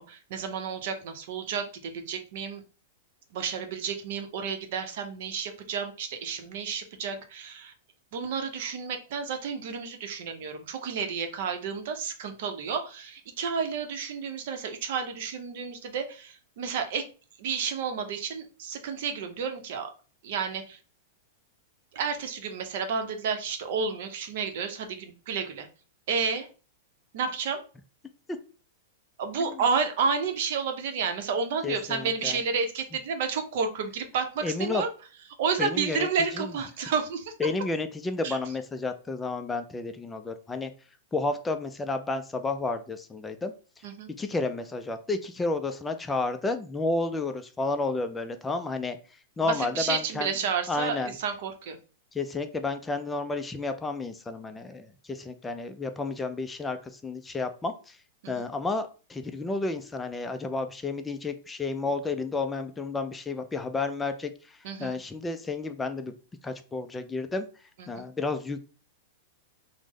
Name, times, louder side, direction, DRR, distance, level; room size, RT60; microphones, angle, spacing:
voice 1, 0.0-2.6 3.3-7.7 8.1-17.1 17.4-19.9 20.2-20.8 21.9-25.7 26.1-26.5 27.1-27.6 29.2-34.9 35.4-37.3 38.2-38.4 43.8-44.1 49.4-51.8 58.2-58.5 64.6-65.0 67.8-68.0, right 6 dB, 60° right, 7 dB, 0.6 m, -31 dB
voice 2, 31.6-32.4 34.4-34.8 35.6-36.1 36.3-36.5 37.4-40.7 41.1-43.5 44.2-49.0 49.4-50.3 50.7-51.1 52.1-56.8 57.0-58.0 58.3-64.3 64.8-66.1 66.4-67.5 67.9-68.6, left 3 dB, 10° left, 7 dB, 0.3 m, -31 dB
3.1 x 2.0 x 3.5 m, 0.36 s
hypercardioid pair, 130°, 0 cm